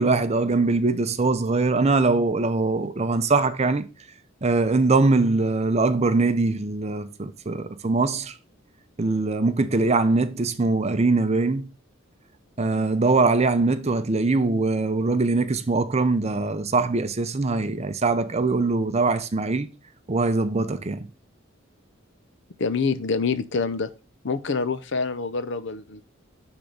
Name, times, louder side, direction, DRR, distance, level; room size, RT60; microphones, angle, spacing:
voice 1, 0.0-3.8 4.4-8.3 9.0-11.7 12.6-19.7 20.1-21.1, right 3 dB, 30° right, 0.6 m, -22 dB
voice 2, 22.6-23.9 24.2-26.0, left 4 dB, 60° left, 0.7 m, -26 dB
10.0 x 3.6 x 5.1 m
head